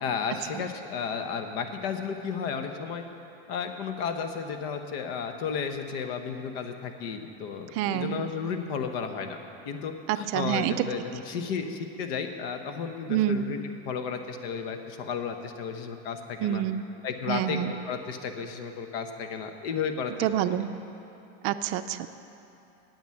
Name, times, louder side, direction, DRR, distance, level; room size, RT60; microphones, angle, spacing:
voice 1, 0.0-3.0 3.5-9.4 9.6-16.6 17.0-20.6, left 6 dB, 70° left, 7 dB, 1.2 m, -33 dB
voice 2, 7.8-8.3 10.3-10.7 13.1-13.4 16.4-16.8 17.3-17.7 20.2-20.7 21.4-22.1, right 12 dB, 50° right, 11 dB, 0.5 m, -27 dB
9.3 x 9.0 x 7.7 m, 2.8 s
supercardioid pair, 140°, 31 cm